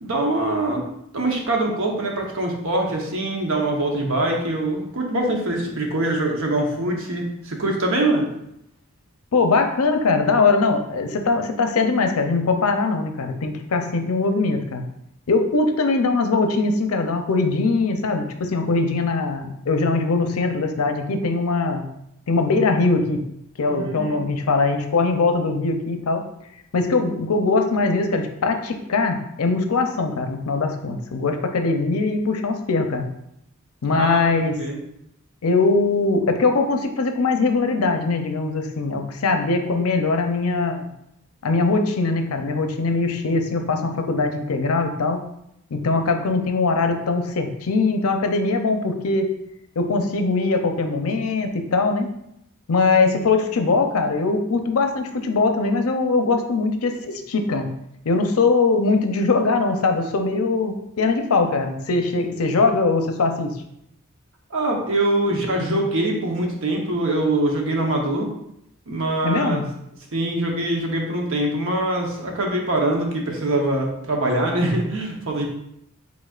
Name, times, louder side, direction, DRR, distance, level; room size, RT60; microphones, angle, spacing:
voice 1, 0.0-0.8 1.1-8.3 23.7-24.3 33.9-34.8 64.5-68.3 68.9-69.6 70.1-75.5, right 1 dB, 65° right, 1 dB, 0.9 m, -23 dB
voice 2, 9.3-14.8 15.3-21.8 22.3-23.2 23.6-26.2 26.7-33.1 33.8-34.6 35.4-40.9 41.4-45.2 45.7-49.3 49.8-52.1 52.7-57.7 58.1-63.5 65.7-65.8 69.2-69.6, left 3 dB, 80° left, 6 dB, 0.6 m, -21 dB
5.1 x 4.0 x 2.4 m, 0.78 s
head